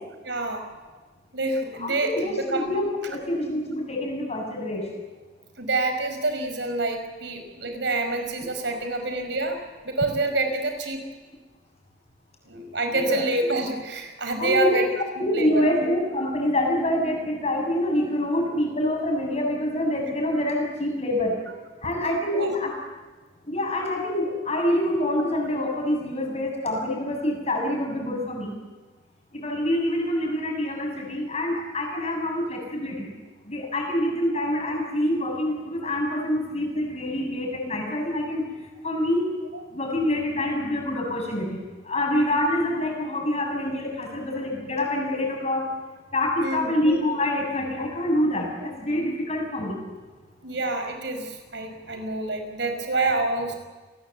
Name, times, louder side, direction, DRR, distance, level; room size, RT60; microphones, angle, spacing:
voice 1, 0.2-0.6 1.3-2.6 5.6-9.6 9.8-11.0 12.5-14.9 15.2-15.7 22.3-22.5 35.8-35.9 39.5-39.6 40.4-40.5 46.4-46.7 50.4-53.6, right 2 dB, 70° right, 6 dB, 5.1 m, -27 dB
voice 2, 1.8-4.8 12.9-13.2 14.4-14.8 15.2-21.3 21.8-22.7 23.5-28.5 29.3-33.1 33.5-38.4 38.8-39.3 39.7-45.7 46.1-49.8, left 1 dB, 35° left, 1 dB, 7.7 m, -26 dB
29.5 x 19.5 x 8.2 m, 1.3 s
head